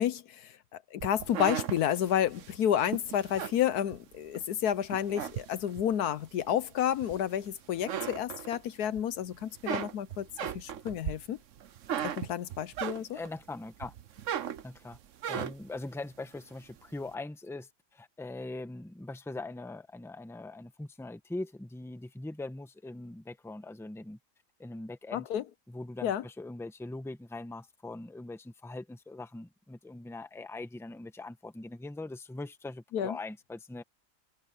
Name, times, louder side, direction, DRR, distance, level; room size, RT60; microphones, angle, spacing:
voice 1, 0.0-11.4 12.0-13.2 25.1-25.4 26.0-26.2 32.9-33.2, left 10 dB, 70° left, 1.2 m, -30 dB
sound 1, 1.0-4.4 4.8-5.9 6.5-7.5 7.7-9.0 9.3-13.4 13.8-15.8, right 9 dB, 55° right, 1.0 m, -37 dB
voice 2, 13.0-13.9 14.6-15.0 15.3-24.2 24.6-25.3 25.7-33.8, left 2 dB, ahead, 1.0 m, -41 dB
omnidirectional pair, 1.8 m